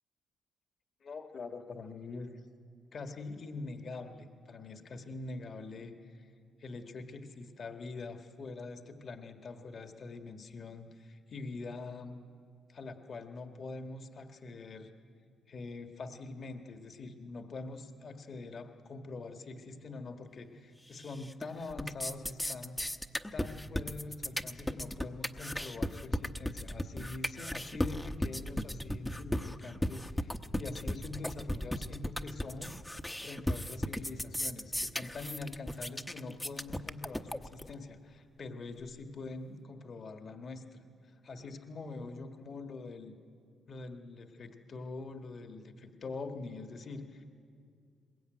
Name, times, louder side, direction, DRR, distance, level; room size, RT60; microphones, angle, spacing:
voice 1, 1.0-2.4 2.9-6.3 6.6-12.2 12.7-14.9 15.5-22.8 23.3-32.8 33.2-40.8 41.2-43.2 43.7-47.3, left 3 dB, 50° left, 6 dB, 1.7 m, -44 dB
sound 1, 21.0-21.4 21.7-37.7, left 1 dB, 5° left, 0.9 m, -35 dB
22.5 x 20.5 x 9.3 m, 2.3 s
cardioid pair, 90°, 0 cm